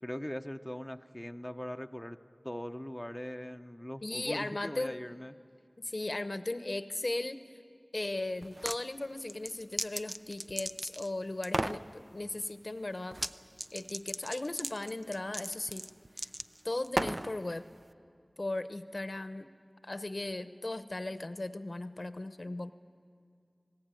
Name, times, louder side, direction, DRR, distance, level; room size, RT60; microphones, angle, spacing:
voice 1, 0.0-2.2 2.4-5.3, equal, 10° left, 6 dB, 0.8 m, -40 dB
voice 2, 4.0-5.0 5.8-7.4 7.9-13.2 13.7-15.9 16.6-17.6 18.4-19.5 19.8-22.7, left 2 dB, 60° left, 11 dB, 0.8 m, -37 dB
sound 1, 8.4-8.8 9.2-11.1 11.4-11.8 13.1-13.3 13.6-17.3, right 1 dB, 40° right, 0.6 m, -35 dB
26.5 x 19.0 x 9.0 m, 2.3 s
wide cardioid pair, 40°, 0 cm